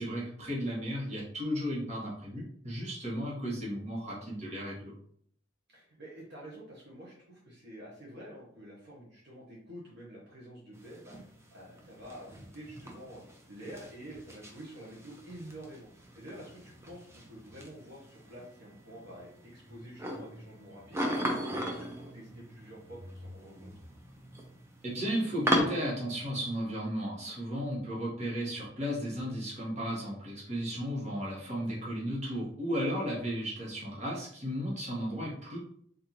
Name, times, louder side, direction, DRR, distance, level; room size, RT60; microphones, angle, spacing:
voice 1, 0.0-4.9 24.8-35.6, equal, 35° right, -4 dB, 1.3 m, -34 dB
voice 2, 5.7-11.2 11.5-13.2 13.5-15.9 16.1-21.1 21.4-23.7 31.5-32.0, right 1 dB, 60° right, -5 dB, 0.9 m, -48 dB
sound 1, 10.7-25.6, equal, 15° right, 0.5 m, -38 dB
3.8 x 2.6 x 2.9 m, 0.65 s
head